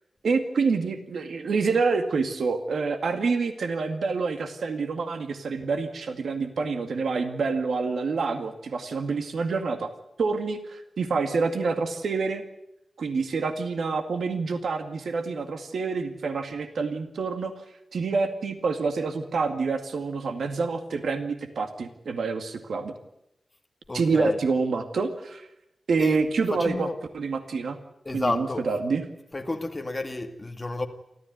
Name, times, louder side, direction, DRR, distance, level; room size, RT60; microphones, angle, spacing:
voice 1, 0.2-9.9 10.2-12.4 13.0-17.5 17.9-22.9 23.9-25.5 25.9-26.9 27.1-27.8 28.1-29.0, right 4 dB, 90° right, 2.1 m, -27 dB
voice 2, 23.9-24.4 26.0-26.2 26.5-27.0 28.0-28.7 29.3-30.9, left 2 dB, 20° left, 2.1 m, -30 dB
29.0 x 13.5 x 9.5 m
wide cardioid pair, 180°, 0 cm